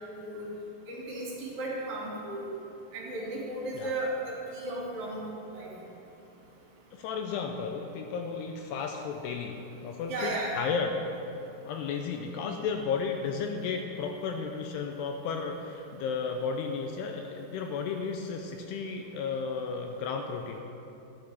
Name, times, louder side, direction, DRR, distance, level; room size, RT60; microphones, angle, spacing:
voice 1, 0.1-0.5 0.9-2.4 2.9-5.2 5.5-5.7 10.1-10.6, right 1 dB, 50° right, -5 dB, 3.3 m, -35 dB
voice 2, 6.9-11.0 11.6-20.6, left 5 dB, 85° left, 4 dB, 2.4 m, -33 dB
13.0 x 11.0 x 3.5 m, 2.8 s
omnidirectional pair, 5.2 m